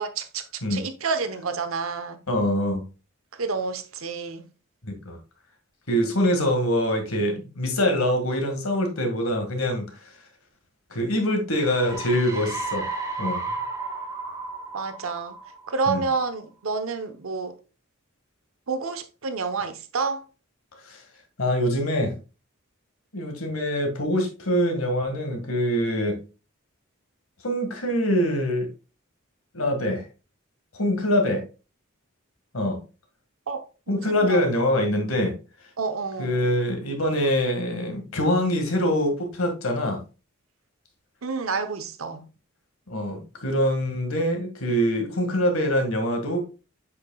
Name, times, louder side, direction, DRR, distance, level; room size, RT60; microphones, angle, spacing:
voice 1, 0.0-2.2 3.3-4.5 14.7-15.4 15.7-17.5 18.7-20.2 33.5-34.5 35.8-36.5 41.2-42.3, right 4 dB, 80° right, 0.9 m, -29 dB
voice 2, 2.3-2.8 4.8-5.2 5.9-10.1 10.9-12.9 13.2-13.4 15.9-16.0 20.9-21.0 21.4-22.2 23.1-26.2 27.4-28.7 29.5-30.0 30.8-31.4 32.5-32.8 33.9-35.3 36.2-40.0 42.9-46.4, equal, 85° left, 1.9 m, -24 dB
sound 1, 11.6-16.1, right 3 dB, 15° right, 1.1 m, -33 dB
7.8 x 5.9 x 2.3 m
head